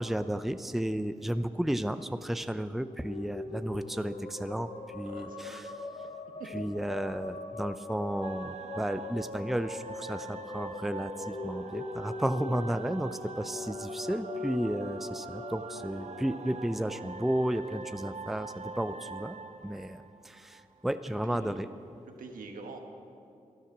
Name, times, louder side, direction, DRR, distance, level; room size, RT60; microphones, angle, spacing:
voice 1, 0.0-5.7 6.5-21.7, right 1 dB, ahead, 12 dB, 0.5 m, -33 dB
sound 1, 2.7-17.1, left 3 dB, 55° left, 1.7 m, -42 dB
voice 2, 5.0-5.8 6.4-6.6 21.0-21.6 22.1-22.8, right 4 dB, 75° right, 3 dB, 1.5 m, -45 dB
sound 2, 8.2-20.8, right 4 dB, 50° right, 0.9 m, -44 dB
13.5 x 11.5 x 6.0 m, 2.6 s
supercardioid pair, 40°, 14 cm